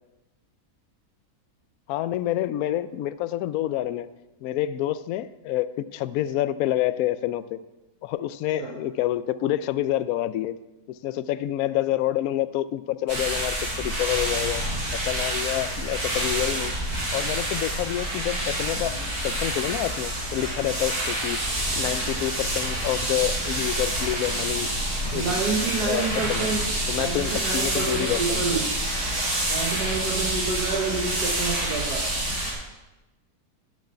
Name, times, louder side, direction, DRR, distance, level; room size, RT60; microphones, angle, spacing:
voice 1, 1.9-4.1 4.4-7.6 8.0-10.5 11.0-14.6 15.1-16.7 17.1-21.4 21.7-24.7 25.1-25.4 25.8-26.5 26.9-28.4, left 13 dB, 70° left, 14 dB, 1.0 m, -28 dB
sound 1, 13.1-32.5, right 1 dB, 65° right, 3.8 m, -28 dB
voice 2, 25.1-26.6 26.9-28.6 29.5-32.1, right 4 dB, 90° right, -1 dB, 2.0 m, -28 dB
8.9 x 6.3 x 8.4 m, 1.0 s
omnidirectional pair, 1.7 m